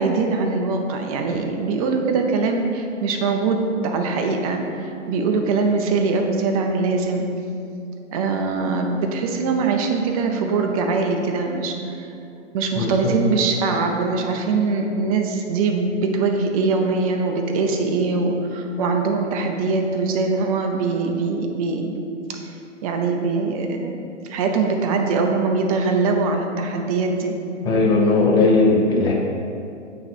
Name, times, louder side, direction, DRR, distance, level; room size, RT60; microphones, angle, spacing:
voice 1, 0.0-7.3 8.1-12.1 12.5-21.9 22.3-22.4 22.8-23.9 24.3-27.4, right 4 dB, 30° right, 3 dB, 0.6 m, -22 dB
voice 2, 12.8-13.2 27.6-29.1, left 3 dB, 10° left, -2 dB, 0.5 m, -18 dB
8.9 x 3.3 x 4.2 m, 2.6 s
hypercardioid pair, 130°, 37 cm